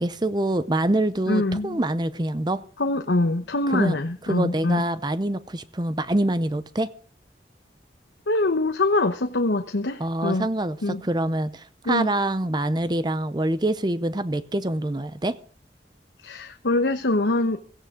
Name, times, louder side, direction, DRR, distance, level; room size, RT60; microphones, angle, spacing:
voice 1, 0.0-2.6 3.7-4.0 4.3-6.9 10.0-15.4, right 1 dB, 25° right, 0.6 m, -25 dB
voice 2, 1.3-1.8 2.8-4.8 8.3-10.5 10.8-11.0 11.8-12.1 16.2-17.6, left 2 dB, 90° left, 1.0 m, -24 dB
17.0 x 15.5 x 3.8 m
head